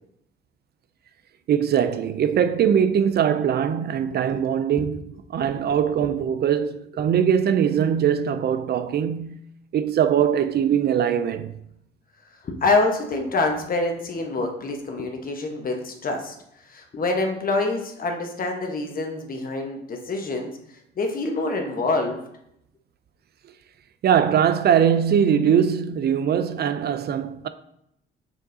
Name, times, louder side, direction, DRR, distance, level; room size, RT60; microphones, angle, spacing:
voice 1, 1.5-5.0 5.3-9.4 9.7-11.6 24.0-27.5, right 8 dB, 55° right, 0.4 m, -21 dB
voice 2, 5.4-6.1 12.4-22.2, left 3 dB, 45° left, 1.1 m, -26 dB
6.5 x 6.2 x 2.7 m
cardioid pair, 90°, 20 cm